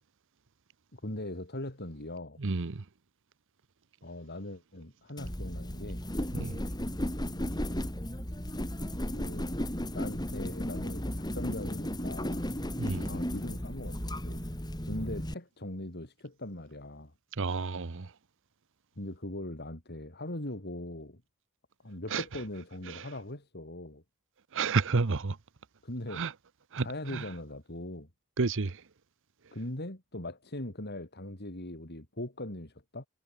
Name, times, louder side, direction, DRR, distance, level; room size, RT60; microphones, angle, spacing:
voice 1, 0.9-2.4 4.0-6.0 7.3-7.8 9.1-9.5 9.9-12.5 13.0-14.4 14.8-17.1 19.0-21.2 21.8-24.0 25.8-26.2 26.8-28.1 29.5-33.1, left 1 dB, 50° left, 4.6 m, -40 dB
voice 2, 2.4-2.8 6.3-6.6 12.8-13.1 17.4-18.1 22.1-22.2 22.9-23.1 24.5-25.4 26.1-26.3 26.7-27.2 28.4-28.8, right 4 dB, 60° right, 0.9 m, -30 dB
sound 1, 5.2-15.3, equal, 20° left, 4.4 m, -35 dB
head